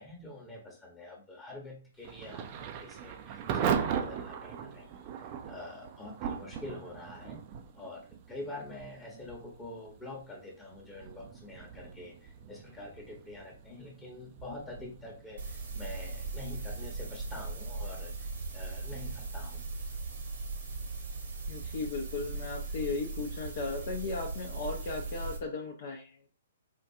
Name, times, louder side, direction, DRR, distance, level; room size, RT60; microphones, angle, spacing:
voice 1, 0.0-7.4 7.7-19.6, left 2 dB, 15° left, -2 dB, 0.9 m, -46 dB
Thunder / Rain, 2.0-18.7, right 8 dB, 35° right, 0.4 m, -39 dB
sound 1, 15.4-25.4, right 3 dB, 60° right, 1.0 m, -38 dB
voice 2, 21.5-26.3, left 4 dB, 50° left, 1 dB, 0.6 m, -36 dB
4.5 x 2.3 x 2.6 m, 0.40 s
figure-of-eight pair, 120°, 0 cm